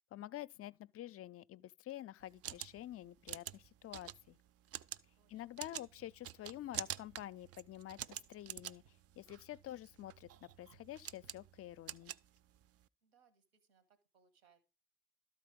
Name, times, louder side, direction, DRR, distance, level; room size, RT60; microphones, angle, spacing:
voice 1, 0.1-4.4 5.3-8.8 9.2-12.1, left 13 dB, 50° left, 0.4 m, -48 dB
sound 1, 2.2-12.9, right 11 dB, 50° right, 0.5 m, -48 dB
voice 2, 5.2-5.6 13.0-14.6, right 6 dB, 85° right, 1.4 m, -72 dB
sound 2, 5.8-12.5, right 11 dB, 65° right, 0.8 m, -68 dB
12.5 x 4.2 x 5.1 m
hypercardioid pair, 40°, 30 cm